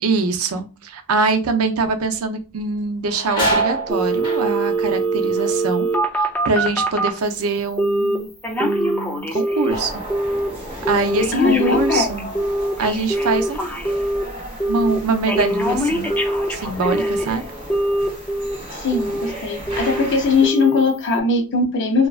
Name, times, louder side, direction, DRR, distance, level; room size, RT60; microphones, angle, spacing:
voice 1, 0.0-5.9 6.1-8.3 8.6-9.9 10.9-12.3 12.8-13.9 14.7-16.1 16.5-17.4, right 3 dB, 85° right, 7 dB, 0.5 m, -23 dB
sound 1, 2.0-2.2 2.6-8.2 8.5-9.1 9.6-12.5 12.8-12.9 13.9-14.1 14.5-15.7 16.1-16.3 16.9-17.5 17.8-19.0, right 2 dB, 25° left, 0.9 m, -30 dB
Telephone, 3.9-7.2 7.8-8.2 8.4-9.8 10.1-10.5 10.8-14.2 14.6-15.0 15.3-17.3 17.7-18.6 18.9-19.3 19.7-20.1 20.4-20.8 21.2-21.3, right 1 dB, 10° left, 0.4 m, -22 dB
sound 2, 9.7-20.5, equal, 25° right, 0.9 m, -35 dB
voice 2, 11.3-12.2 18.7-22.1, left 4 dB, 55° left, 4 dB, 0.6 m, -19 dB
2.7 x 2.3 x 2.3 m, 0.31 s
head